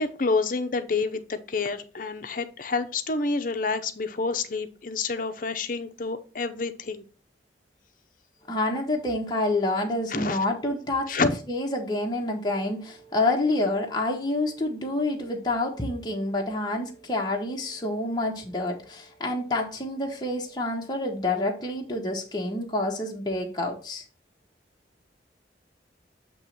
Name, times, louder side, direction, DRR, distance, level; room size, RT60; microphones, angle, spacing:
voice 1, 0.0-7.0 10.1-10.4 11.1-11.3, left 4 dB, 50° left, 0.7 m, -28 dB
voice 2, 8.5-11.2 11.5-24.0, left 2 dB, 25° left, 1.0 m, -28 dB
7.8 x 3.0 x 5.8 m
head